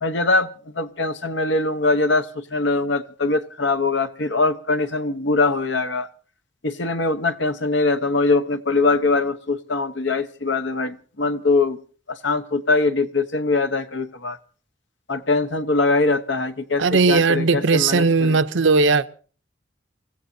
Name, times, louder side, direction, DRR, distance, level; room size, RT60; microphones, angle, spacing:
voice 1, 0.0-6.1 6.6-11.8 12.1-14.4 15.1-18.4, left 3 dB, 65° left, 1.0 m, -22 dB
voice 2, 16.8-19.1, right 4 dB, 75° right, 0.7 m, -18 dB
28.0 x 15.5 x 2.7 m
head